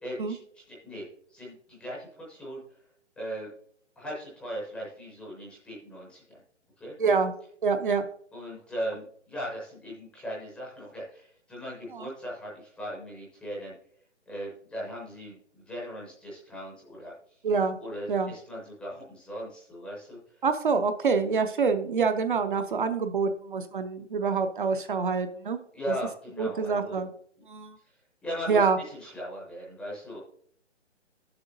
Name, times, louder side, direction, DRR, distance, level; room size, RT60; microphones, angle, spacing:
voice 1, 0.0-2.6 3.2-3.5 4.0-6.4 6.8-6.9 8.3-13.7 14.3-17.1 17.8-20.4 25.7-27.0 28.2-30.2, equal, 5° left, -5 dB, 0.6 m, -38 dB
voice 2, 7.0-7.3 7.6-8.1 11.9-12.1 17.4-17.8 18.1-18.3 20.4-25.6 26.4-27.1 27.5-27.8 28.5-28.8, right 5 dB, 45° right, 7 dB, 0.6 m, -26 dB
10.5 x 6.9 x 2.6 m, 0.63 s
figure-of-eight pair, 145°, 37 cm